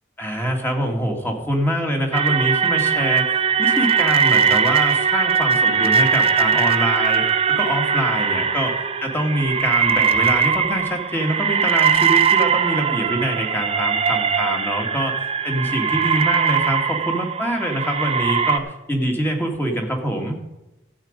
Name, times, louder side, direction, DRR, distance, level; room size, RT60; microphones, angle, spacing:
voice 1, 0.2-20.4, equal, 10° left, 2 dB, 2.0 m, -24 dB
sound 1, 2.1-18.6, right 6 dB, 30° right, 0.7 m, -20 dB
14.0 x 8.5 x 5.2 m, 0.96 s
head